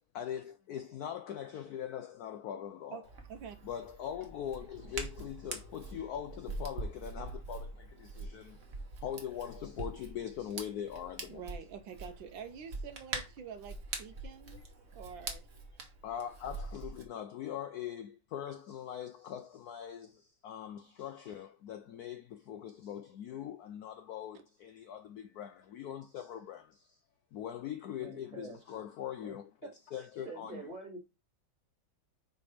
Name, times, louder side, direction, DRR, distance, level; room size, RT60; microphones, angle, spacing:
voice 1, 0.1-3.0 3.6-8.6 9.0-11.4 16.0-27.0 27.3-29.5 29.9-30.7, left 9 dB, 75° left, 0.8 m, -42 dB
Hands, 3.0-17.0, right 3 dB, 45° right, 1.3 m, -44 dB
voice 2, 11.3-14.6 14.9-15.5, right 7 dB, 75° right, 1.4 m, -46 dB
voice 3, 28.0-28.6 29.2-29.4 29.6-29.7 30.2-31.0, right 3 dB, 20° right, 2.1 m, -45 dB
5.2 x 4.5 x 4.9 m
omnidirectional pair, 2.2 m